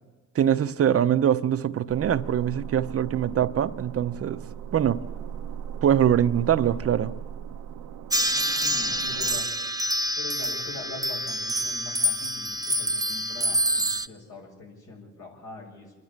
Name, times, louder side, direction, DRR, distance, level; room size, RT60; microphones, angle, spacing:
voice 1, 0.3-4.4 4.7-5.0 5.8-7.1, right 9 dB, 50° right, 0.8 m, -23 dB
sound 1, 1.9-9.4, right 8 dB, 90° right, 0.9 m, -38 dB
sound 2, 8.1-14.1, equal, 10° right, 0.7 m, -27 dB
voice 2, 8.5-9.5 10.2-15.9, left 3 dB, 80° left, 7.2 m, -42 dB
28.0 x 11.0 x 8.7 m
cardioid pair, 90°, 30 cm